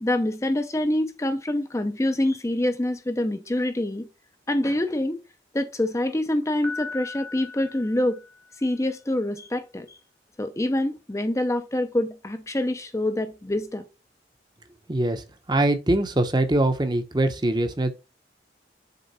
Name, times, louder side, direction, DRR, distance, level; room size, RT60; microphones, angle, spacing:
voice 1, 0.0-4.1 4.5-5.2 5.5-8.2 8.6-10.0 10.4-13.8, left 1 dB, 15° left, 0.6 m, -26 dB
Piano, 6.6-8.7, left 4 dB, 70° right, 1.3 m, -38 dB
voice 2, 14.9-17.9, right 1 dB, 25° right, 0.8 m, -23 dB
6.8 x 3.8 x 4.1 m
head